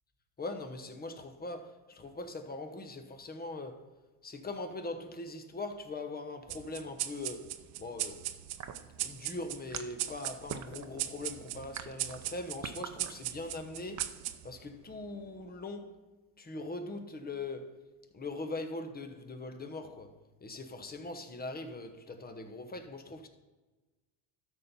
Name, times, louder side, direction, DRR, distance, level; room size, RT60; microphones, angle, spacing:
voice 1, 0.4-3.9 4.2-8.3 9.0-14.2 14.4-16.0 16.4-17.9 18.1-23.3, left 2 dB, 20° left, 1.0 m, -41 dB
sound 1, 6.5-15.4, right 14 dB, 90° right, 0.8 m, -40 dB
sound 2, 8.6-14.2, right 8 dB, 35° right, 0.7 m, -43 dB
12.5 x 4.5 x 5.5 m
cardioid pair, 115°, 48 cm